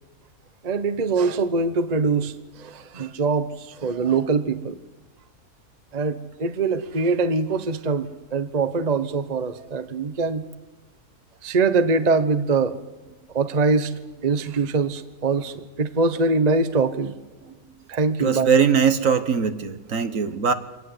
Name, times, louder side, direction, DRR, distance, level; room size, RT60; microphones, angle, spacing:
voice 1, 0.6-4.8 5.9-10.4 11.4-12.8 13.3-13.9 14.2-17.2 17.9-18.5, right 4 dB, 30° right, 11 dB, 1.0 m, -23 dB
voice 2, 18.2-20.5, right 6 dB, 60° right, 11 dB, 1.5 m, -21 dB
25.0 x 19.0 x 8.0 m, 1.1 s
omnidirectional pair, 1.6 m